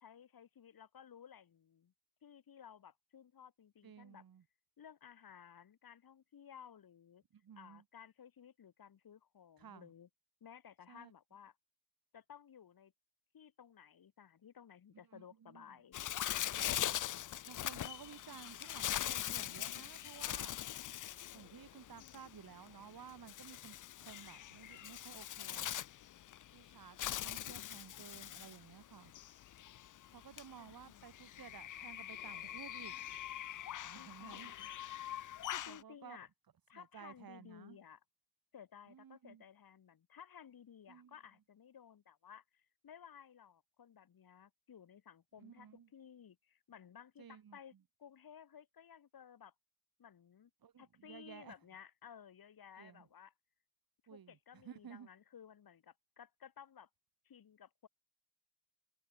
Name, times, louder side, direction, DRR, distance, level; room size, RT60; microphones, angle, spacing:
voice 1, 0.0-1.9 2.2-4.2 4.8-7.2 7.6-10.1 10.4-11.5 12.1-12.9 13.3-16.0 30.6-31.1 33.9-34.7 35.5-36.3 36.7-38.0 38.5-47.7 48.0-49.5 50.0-50.5 50.8-53.3 54.1-56.9 57.2-57.9, left 8 dB, 85° left, 3.2 m, -57 dB
voice 2, 3.8-4.4 7.3-7.8 9.6-9.9 10.9-11.1 14.9-15.8 16.5-16.9 17.5-20.6 21.3-25.7 26.5-29.1 30.1-32.9 33.8-34.5 35.7-36.2 36.7-37.8 38.9-39.4 40.9-41.1 45.4-45.9 47.2-47.8 50.6-51.5 52.8-53.1 54.1-55.1, right 8 dB, 80° right, 3.0 m, -55 dB
Bird, 15.9-35.8, left 12 dB, 60° left, 0.5 m, -42 dB
wide cardioid pair, 145°, 35 cm